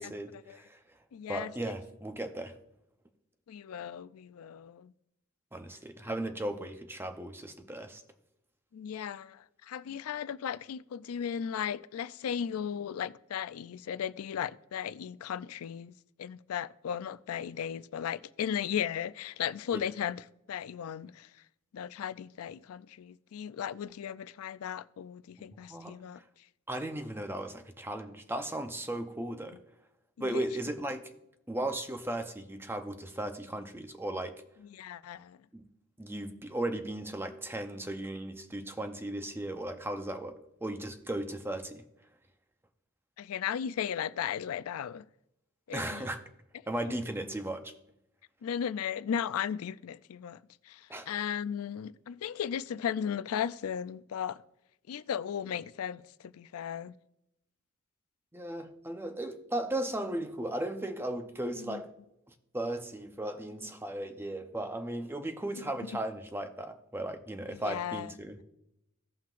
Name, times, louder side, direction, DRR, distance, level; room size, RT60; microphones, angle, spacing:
voice 1, 0.0-1.0 1.3-2.6 5.5-8.0 19.7-19.9 25.7-26.2 26.7-29.6 30.2-31.0 31.5-34.4 35.5-35.7 36.0-41.8 45.7-46.2 46.7-47.7 50.9-51.1 58.3-61.9 62.3-68.4, right 1 dB, 10° right, 0.6 m, -36 dB
voice 2, 1.1-1.7 3.5-4.9 8.7-15.9 16.2-20.2 20.5-21.3 21.7-26.2 30.2-30.4 34.7-35.4 43.2-45.0 45.7-46.1 48.4-50.4 50.6-54.4 54.9-56.9 61.6-61.8 67.5-68.1, left 8 dB, 85° left, 0.4 m, -36 dB
16.5 x 5.7 x 2.5 m
head